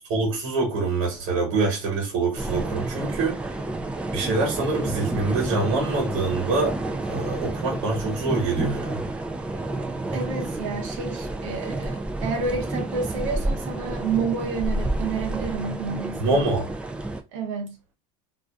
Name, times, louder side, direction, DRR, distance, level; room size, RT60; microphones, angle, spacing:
voice 1, 0.1-3.5 4.1-6.8 7.1-9.0 16.2-16.7, right 3 dB, 65° right, 1.2 m, -25 dB
sound 1, 2.4-17.2, right 2 dB, 5° right, 0.3 m, -30 dB
voice 2, 10.1-16.4 17.3-17.7, right 4 dB, 90° right, 0.7 m, -30 dB
2.5 x 2.2 x 2.3 m
supercardioid pair, 120°, 16 cm